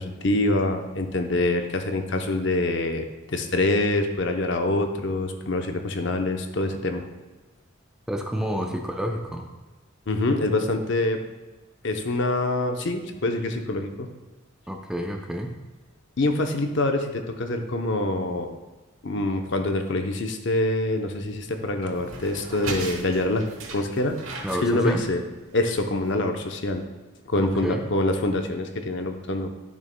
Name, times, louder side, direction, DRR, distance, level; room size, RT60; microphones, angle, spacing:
voice 1, 0.0-7.0 10.1-11.2 11.8-14.1 16.2-18.5 19.0-24.2 24.6-25.2 25.5-26.8 27.3-29.5, left 2 dB, 60° left, 5 dB, 0.7 m, -25 dB
voice 2, 8.1-9.5 14.7-15.5 24.4-25.1 27.3-27.8, equal, 5° right, 2 dB, 0.5 m, -29 dB
sound 1, 20.7-26.1, right 3 dB, 80° right, 1.2 m, -39 dB
12.5 x 6.5 x 2.2 m, 1.2 s
head